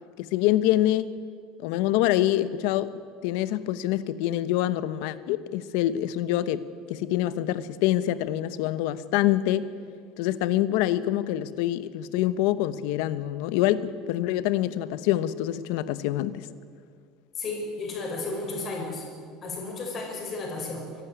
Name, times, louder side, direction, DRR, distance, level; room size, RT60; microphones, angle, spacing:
voice 1, 0.2-1.1 1.6-2.9 3.2-9.7 10.2-16.5, left 13 dB, 70° left, 14 dB, 1.0 m, -25 dB
voice 2, 17.4-19.0 19.4-20.9, left 3 dB, 30° left, -1 dB, 5.8 m, -33 dB
24.0 x 12.0 x 9.4 m, 2.1 s
cardioid pair, 155°, 0 cm